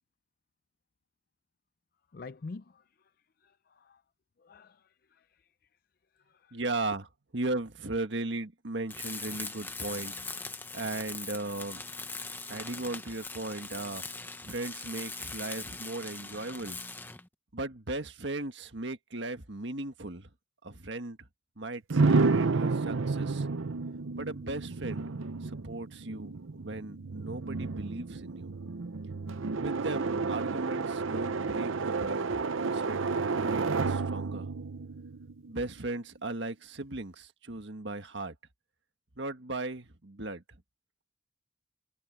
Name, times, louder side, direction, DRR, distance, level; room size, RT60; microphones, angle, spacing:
voice 1, 2.1-2.8 3.4-4.0 4.4-4.8 5.1-5.3 6.4-6.6, left 3 dB, 45° left, 0.4 m, -46 dB
voice 2, 6.5-10.4 10.7-11.8 12.5-16.8 17.5-20.3 20.6-21.3 21.6-23.5 24.1-25.1 25.4-28.5 29.6-33.0 33.3-34.5 35.5-38.3 39.1-40.4, right 2 dB, 60° right, 1.6 m, -37 dB
Tools, 8.9-17.3, left 3 dB, 10° left, 0.9 m, -41 dB
sound 1, 21.9-35.7, right 4 dB, 80° right, 0.7 m, -31 dB
head